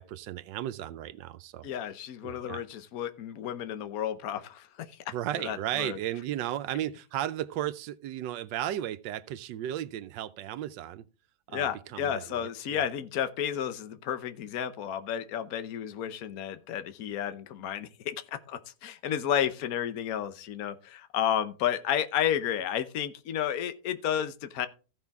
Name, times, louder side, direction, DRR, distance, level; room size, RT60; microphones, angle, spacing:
voice 1, 0.0-1.7 2.2-2.6 5.1-11.0 11.5-12.8, right 12 dB, 85° right, 1.3 m, -35 dB
voice 2, 1.6-5.0 5.4-6.0 11.5-24.7, left 9 dB, 60° left, 1.2 m, -32 dB
15.0 x 5.7 x 3.5 m
omnidirectional pair, 1.9 m